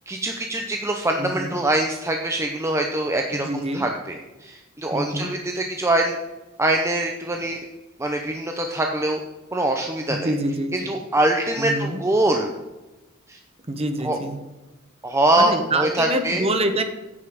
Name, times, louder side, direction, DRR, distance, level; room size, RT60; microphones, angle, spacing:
voice 1, 0.1-6.2 6.6-7.6 8.0-9.2 9.5-10.3 10.7-12.5 13.3-13.4 14.0-14.2 15.0-16.4, right 1 dB, 15° right, 3 dB, 0.7 m, -23 dB
voice 2, 1.2-1.6 3.3-3.8 4.9-5.3 10.1-10.9 11.6-12.0 13.7-14.4 15.4-16.8, right 1 dB, 30° right, 7 dB, 1.1 m, -26 dB
9.5 x 5.5 x 7.8 m, 1.1 s
head